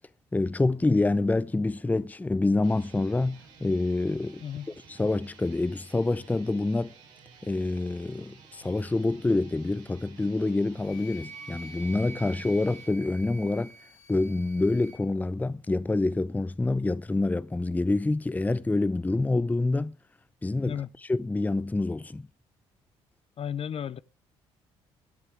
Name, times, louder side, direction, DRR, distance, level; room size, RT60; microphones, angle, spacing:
voice 1, 0.3-4.4 4.9-6.9 7.4-13.7 14.1-19.9 20.4-20.8 21.1-22.3, left 2 dB, 15° left, 0.6 m, -27 dB
sound 1, 2.5-12.9, right 6 dB, 80° right, 4.2 m, -54 dB
Wind instrument woodwind instrument, 10.8-15.0, right 3 dB, 70° left, 4.3 m, -46 dB
voice 2, 23.4-24.0, left 8 dB, 50° left, 0.8 m, -34 dB
23.0 x 9.9 x 3.5 m
supercardioid pair, 65°, 13 cm